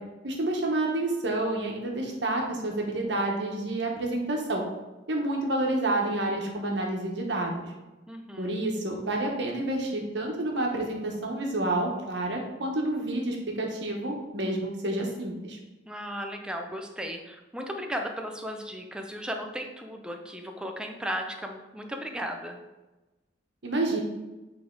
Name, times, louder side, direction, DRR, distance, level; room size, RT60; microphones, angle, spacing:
voice 1, 0.2-4.6 5.1-7.6 8.4-15.6 23.6-24.0, right 2 dB, 70° right, 0 dB, 1.2 m, -29 dB
voice 2, 8.1-8.6 15.9-22.6, equal, 5° right, 3 dB, 0.6 m, -36 dB
8.1 x 3.4 x 3.9 m, 1.1 s
head